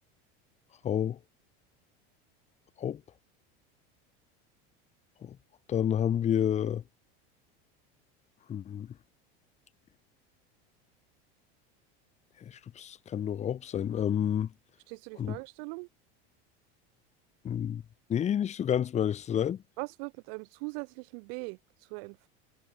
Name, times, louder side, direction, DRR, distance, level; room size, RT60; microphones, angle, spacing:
voice 1, 0.8-1.2 2.8-3.0 5.2-5.4 5.7-6.8 8.5-8.9 12.4-14.5 15.2-15.4 17.4-17.8 18.1-19.6, left 9 dB, 25° left, 0.6 m, -29 dB
voice 2, 14.9-15.9 19.8-22.3, right 38 dB, 65° right, 1.9 m, -41 dB
supercardioid pair, 110°, 30 cm